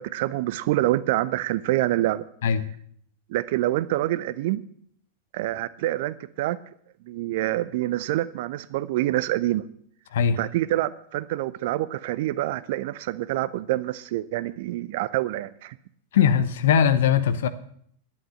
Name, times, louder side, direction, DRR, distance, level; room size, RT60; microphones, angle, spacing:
voice 1, 0.0-2.2 3.3-4.6 5.3-6.6 7.1-9.6 10.4-15.8, right 15 dB, 50° right, 16 dB, 0.5 m, -26 dB
voice 2, 16.1-17.5, left 8 dB, 60° left, 13 dB, 0.8 m, -20 dB
11.5 x 8.7 x 7.8 m, 0.65 s
figure-of-eight pair, 90°, 0 cm